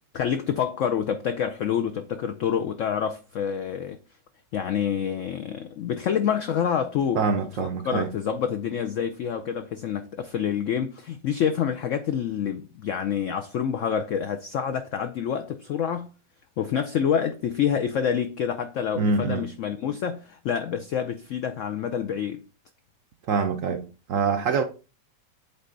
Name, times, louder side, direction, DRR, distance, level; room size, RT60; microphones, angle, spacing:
voice 1, 0.1-4.0 4.5-7.2 7.6-16.1 16.6-22.4, left 8 dB, 80° left, 0.7 m, -27 dB
voice 2, 7.2-8.1 19.0-19.5 23.3-24.6, right 4 dB, 65° right, 0.8 m, -25 dB
8.2 x 3.4 x 3.8 m
omnidirectional pair, 1.9 m